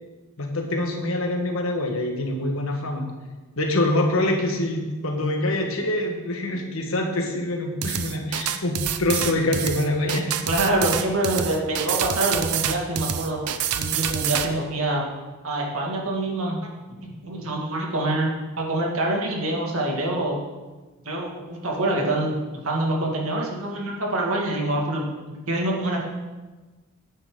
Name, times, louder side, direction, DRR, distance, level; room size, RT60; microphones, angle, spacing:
voice 1, 0.4-3.0 3.6-10.5, left 1 dB, 65° left, 2 dB, 1.5 m, -25 dB
sound 1, 7.8-14.5, right 9 dB, 85° right, 0.7 m, -27 dB
voice 2, 10.5-13.4 13.7-15.0 15.4-16.6 17.0-18.3 18.6-20.4 21.0-26.1, right 1 dB, 70° right, -1 dB, 2.2 m, -25 dB
9.9 x 9.0 x 3.9 m, 1.2 s
head